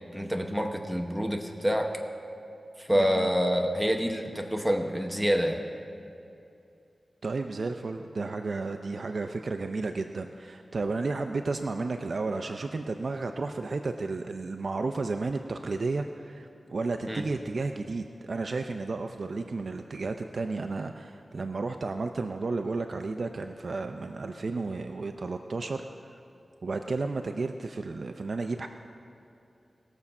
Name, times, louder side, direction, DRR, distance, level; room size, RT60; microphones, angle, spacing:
voice 1, 0.1-1.9 2.8-5.6 17.1-17.2, equal, 5° right, 2 dB, 0.9 m, -27 dB
voice 2, 2.9-3.3 7.2-25.9 26.6-28.7, right 3 dB, 65° right, 6 dB, 0.5 m, -32 dB
20.0 x 7.1 x 5.4 m, 2.7 s
wide cardioid pair, 100°, 0 cm